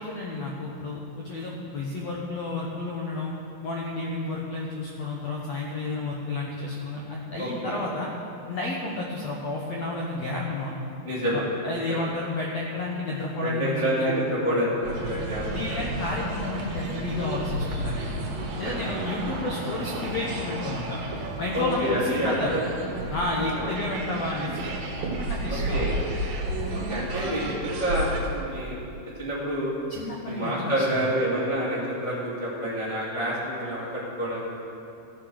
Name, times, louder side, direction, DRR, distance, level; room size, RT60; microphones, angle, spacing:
voice 1, 0.0-3.3 3.6-8.1 8.5-10.7 11.3-14.1 15.5-18.3 18.6-21.1 21.4-22.6 23.1-24.7 25.2-25.9 29.9-31.1, left 2 dB, 75° left, -2 dB, 1.6 m, -31 dB
voice 2, 7.4-7.8 11.0-11.4 13.4-15.8 21.5-22.6 23.4-23.7 25.5-26.0 26.7-28.8 29.2-29.7 30.2-34.5, equal, 15° left, -7 dB, 1.2 m, -28 dB
sound 1, 14.8-28.2, right 2 dB, 65° right, 2.9 m, -32 dB
14.0 x 7.5 x 6.2 m, 2.7 s
omnidirectional pair, 4.3 m